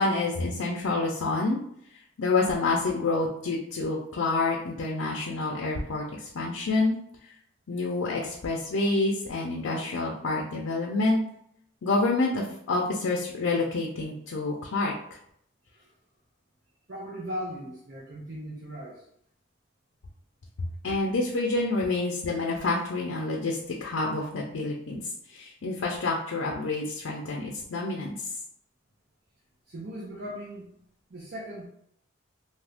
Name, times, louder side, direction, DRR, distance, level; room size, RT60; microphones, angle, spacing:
voice 1, 0.0-1.6 2.2-7.0 7.7-11.2 11.8-14.9 20.8-25.0 25.3-28.1, left 3 dB, 90° left, -1 dB, 0.5 m, -28 dB
voice 2, 16.9-19.1 29.7-30.8 31.1-31.7, equal, 50° right, -3 dB, 0.5 m, -38 dB
2.7 x 2.5 x 3.4 m, 0.72 s
head